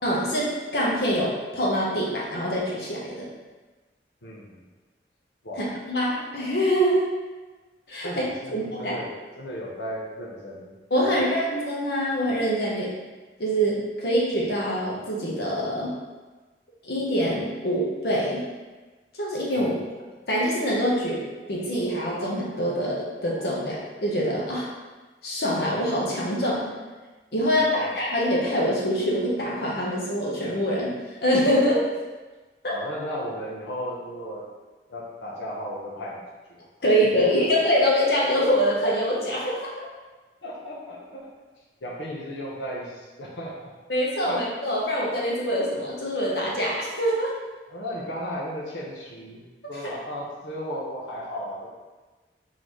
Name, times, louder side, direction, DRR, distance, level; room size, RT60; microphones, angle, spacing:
voice 1, 0.0-3.3 5.6-7.2 7.9-9.0 10.9-12.9 13.4-15.9 16.8-18.4 19.1-19.8 20.3-24.7 25.2-26.7 27.3-31.8 32.6-32.7 36.8-39.9 43.9-47.3, equal, 65° left, -4 dB, 1.0 m, -25 dB
voice 2, 4.2-4.6 5.4-5.7 8.0-10.7 11.0-11.1 19.6-19.8 27.7-27.9 32.7-34.5 34.9-36.2 36.5-36.6 37.2-37.5 40.4-41.3 41.8-43.7 44.2-44.4 47.7-51.7, equal, 90° left, -4 dB, 0.8 m, -35 dB
3.9 x 3.9 x 3.1 m, 1.3 s
head